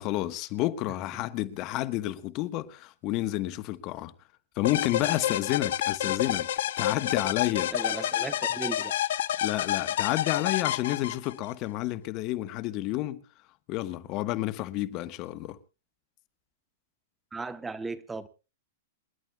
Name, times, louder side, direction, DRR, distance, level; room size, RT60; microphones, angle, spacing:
voice 1, 0.0-4.1 4.6-6.5 6.8-7.7 9.4-13.2 13.7-15.6, left 16 dB, 40° left, 1.2 m, -30 dB
sound 1, 4.6-11.5, left 11 dB, 70° left, 1.0 m, -29 dB
voice 2, 7.7-8.9 17.3-18.3, right 3 dB, 10° right, 1.0 m, -36 dB
28.0 x 11.5 x 2.3 m
hypercardioid pair, 120°, 0 cm